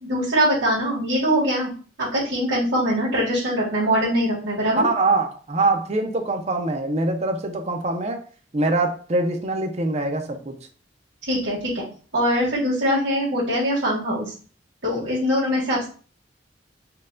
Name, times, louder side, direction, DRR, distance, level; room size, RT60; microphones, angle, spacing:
voice 1, 0.0-1.7 2.0-4.8 11.3-11.9 12.1-14.3 14.8-15.9, equal, 70° right, -9 dB, 1.9 m, -22 dB
voice 2, 4.8-8.2 8.5-10.5, right 2 dB, 40° right, 4 dB, 0.7 m, -23 dB
4.4 x 2.4 x 3.7 m, 0.40 s
head